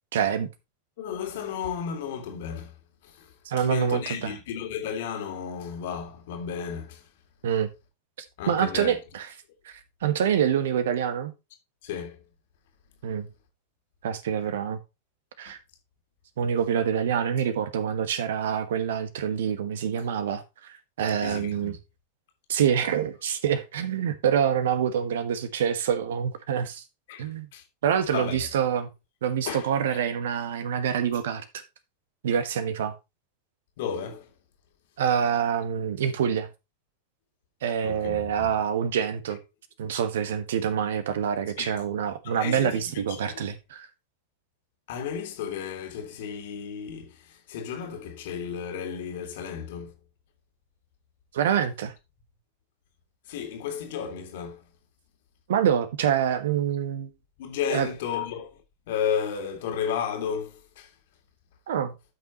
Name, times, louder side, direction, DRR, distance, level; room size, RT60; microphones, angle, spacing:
voice 1, 0.1-0.5 3.4-4.3 7.4-7.7 8.2-9.3 9.6-11.3 13.0-13.3 14.0-14.8 15.4-15.6 16.4-21.8 22.5-26.8 27.2-27.5 27.8-28.9 29.2-31.6 32.2-32.9 35.0-36.5 37.6-39.4 39.8-43.9 51.3-51.9 55.5-57.1 57.7-57.9 61.7-62.0, right 8 dB, 60° right, 1.3 m, -26 dB
voice 2, 1.0-2.8 3.0-7.1 8.4-8.9 11.8-12.2 15.5-15.6 21.2-21.7 27.1-27.6 28.1-28.4 29.5-30.0 33.8-34.3 37.8-38.5 41.6-41.7 42.2-43.5 44.9-49.9 53.3-54.7 57.4-58.6 58.9-60.9, left 8 dB, 55° left, 2.3 m, -33 dB
13.0 x 6.0 x 3.0 m
figure-of-eight pair, 90°, 0 cm